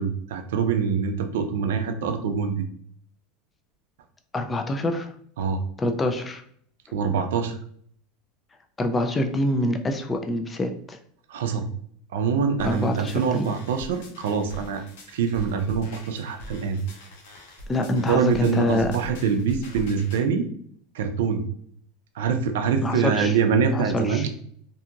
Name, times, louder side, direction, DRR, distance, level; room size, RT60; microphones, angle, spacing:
voice 1, 0.0-2.6 5.4-5.6 6.9-7.6 11.3-11.7 12.1-14.8 15.1-16.8 18.1-20.5 20.9-21.4 22.1-24.3, right 6 dB, 90° right, 6 dB, 0.4 m, -24 dB
voice 2, 4.3-5.2 5.8-6.4 8.8-11.0 12.6-13.5 17.7-18.9 22.8-23.3 23.7-24.3, left 1 dB, 15° left, 5 dB, 0.3 m, -25 dB
sound 1, 12.6-20.2, equal, 70° left, 0.8 m, -44 dB
2.6 x 2.4 x 2.8 m, 0.62 s
supercardioid pair, 150°, 0 cm